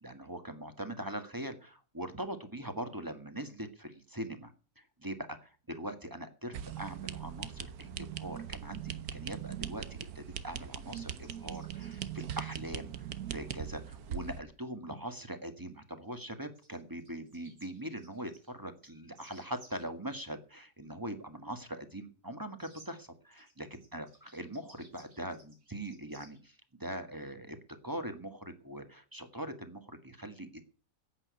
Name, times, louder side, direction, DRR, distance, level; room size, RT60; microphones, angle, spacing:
voice 1, 0.0-9.8 10.1-27.6 27.8-30.6, right 1 dB, 15° right, 8 dB, 1.4 m, -42 dB
sound 1, 6.5-14.4, right 9 dB, 65° right, 1.4 m, -41 dB
sound 2, 10.9-12.7 16.0-16.2 16.5-19.9 22.6-22.9 23.3-26.4, right 2 dB, 90° right, 5.1 m, -60 dB
10.5 x 8.6 x 9.4 m, 0.39 s
omnidirectional pair, 1.8 m